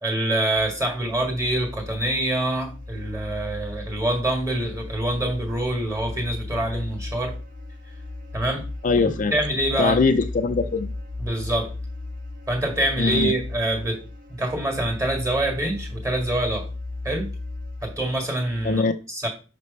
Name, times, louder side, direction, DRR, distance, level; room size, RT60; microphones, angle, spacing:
voice 1, 0.0-7.4 8.3-8.6 9.3-10.0 11.2-11.8 12.5-14.0 14.4-16.7 17.0-17.3 17.8-18.8 19.1-19.3, right 1 dB, 20° right, 2 dB, 1.7 m, -25 dB
sound 1, 0.5-18.7, left 2 dB, 50° right, 1.4 m, -36 dB
voice 2, 8.8-9.3 9.8-10.9 13.0-13.3 18.6-18.9, left 4 dB, 45° left, 7 dB, 0.4 m, -21 dB
5.9 x 3.2 x 5.4 m, 0.34 s
head